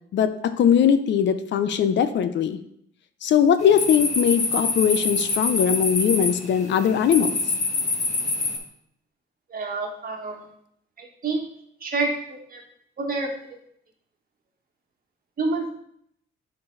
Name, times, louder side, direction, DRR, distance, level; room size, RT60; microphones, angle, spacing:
voice 1, 0.1-2.6 3.2-7.3, left 8 dB, 65° left, 11 dB, 0.7 m, -20 dB
sound 1, 3.6-8.6, left 3 dB, 35° left, 1.9 m, -25 dB
voice 2, 9.5-10.4 11.2-11.4 11.8-12.1 13.0-13.3 15.4-15.7, right 3 dB, 45° right, 1 dB, 1.8 m, -26 dB
8.6 x 4.5 x 4.0 m, 0.70 s
cardioid pair, 90°, 20 cm